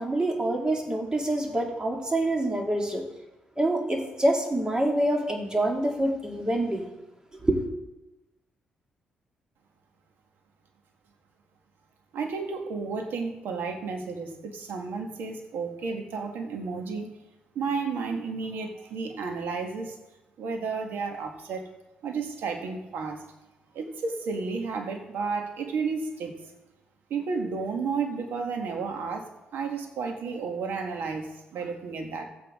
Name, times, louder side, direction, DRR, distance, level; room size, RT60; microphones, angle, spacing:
voice 1, 0.0-3.0 3.6-6.9 7.4-7.6, right 1 dB, 20° right, 1 dB, 2.2 m, -26 dB
voice 2, 12.1-17.1 17.5-20.1 20.4-21.7 22.0-23.2 23.7-26.4 27.1-32.3, right 4 dB, 80° right, 3 dB, 1.5 m, -32 dB
14.5 x 8.3 x 3.7 m, 1.0 s
cardioid pair, 65°, 4 cm